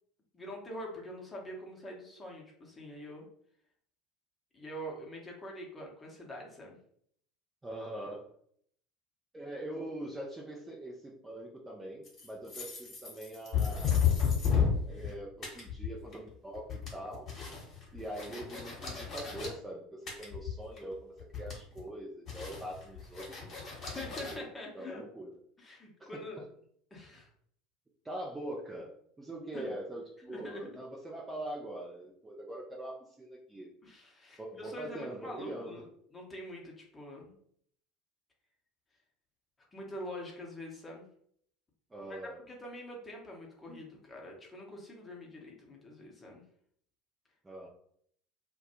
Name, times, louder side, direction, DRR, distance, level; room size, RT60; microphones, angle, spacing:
voice 1, 0.3-3.2 4.5-6.8 23.8-25.0 25.6-26.4 26.9-27.3 29.5-29.7 30.3-30.8 33.8-35.8 36.1-37.4 39.7-41.1 42.1-42.2 42.4-46.4, equal, 20° left, -1 dB, 0.8 m, -45 dB
voice 2, 7.6-8.3 9.3-14.0 14.9-17.3 17.9-24.4 24.7-25.3 26.0-26.2 28.0-33.7 34.4-35.8 41.9-42.4 47.4-47.7, right 1 dB, 15° right, -2 dB, 0.5 m, -43 dB
sound 1, 12.0-15.1 15.4-16.3 16.6-19.5 20.1-20.9 21.2-21.8 22.3-24.3, left 7 dB, 40° left, 1.1 m, -32 dB
2.2 x 2.2 x 2.9 m, 0.66 s
figure-of-eight pair, 70°, 0 cm